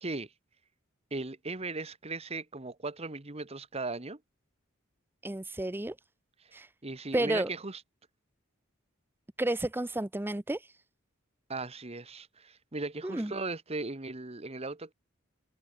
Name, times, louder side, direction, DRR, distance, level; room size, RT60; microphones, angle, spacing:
voice 1, 0.0-0.3 1.1-4.2 6.4-6.5 6.8-7.8 11.5-14.9, right 3 dB, 30° right, 1.3 m, -37 dB
voice 2, 5.2-6.0 6.5-6.7 7.1-7.5 9.4-10.8 13.0-13.3, right 1 dB, 10° right, 0.7 m, -31 dB
head